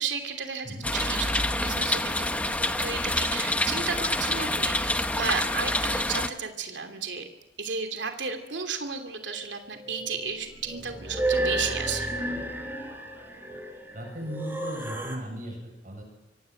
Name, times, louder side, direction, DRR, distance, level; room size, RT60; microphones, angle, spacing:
voice 1, 0.0-2.3 2.6-7.3 7.6-12.1, right 5 dB, 75° right, 6 dB, 2.9 m, -33 dB
sound 1, 0.8-6.3, left 1 dB, 10° left, 1.1 m, -27 dB
sound 2, 9.2-9.4 9.7-15.2, right 1 dB, 10° right, 4.3 m, -32 dB
voice 2, 13.9-16.0, equal, 45° right, 3 dB, 7.9 m, -37 dB
25.0 x 25.0 x 7.9 m, 0.94 s
head